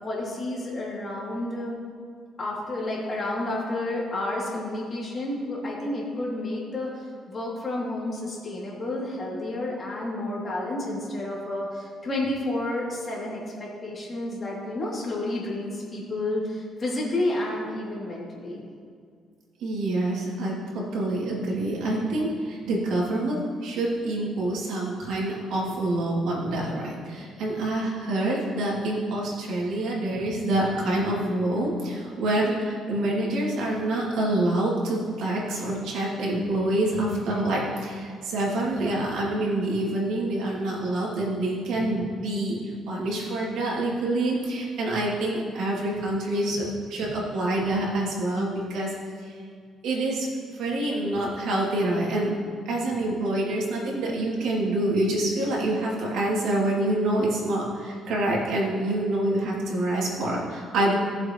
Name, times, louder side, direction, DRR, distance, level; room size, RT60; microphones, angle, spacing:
voice 1, 0.0-1.8 2.4-18.6, left 1 dB, 30° left, -5 dB, 3.0 m, -30 dB
voice 2, 19.6-23.4 23.6-48.9 49.2-49.3 49.8-52.3 52.6-60.9, right 1 dB, 85° right, -5 dB, 2.9 m, -26 dB
18.0 x 7.4 x 3.2 m, 2.1 s
cardioid pair, 135°, 0 cm